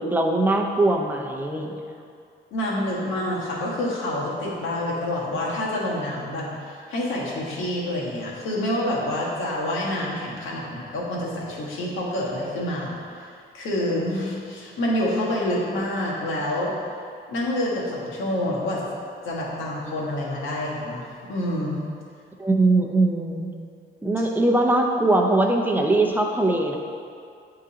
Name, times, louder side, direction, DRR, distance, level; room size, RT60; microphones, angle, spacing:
voice 1, 0.0-1.7 22.4-23.5 24.0-26.8, right 2 dB, 10° right, 1 dB, 0.7 m, -21 dB
voice 2, 2.5-16.7 17.3-18.9 19.2-21.8, left 1 dB, 80° left, -4 dB, 1.4 m, -27 dB
9.5 x 3.7 x 2.9 m, 2.3 s
cardioid pair, 90°, 20 cm